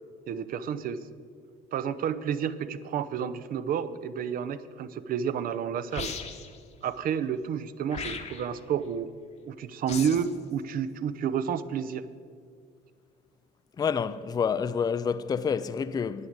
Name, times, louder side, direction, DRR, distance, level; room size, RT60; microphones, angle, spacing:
voice 1, 0.3-1.0 1.7-6.1 6.8-9.1 9.5-12.0, right 8 dB, 60° right, 0.6 m, -30 dB
sound 1, 5.9-6.6 7.9-8.6 9.9-10.3, left 5 dB, 40° left, 1.0 m, -37 dB
voice 2, 13.8-16.3, left 6 dB, 25° left, 0.4 m, -28 dB
9.7 x 8.6 x 8.0 m
cardioid pair, 110°, 17 cm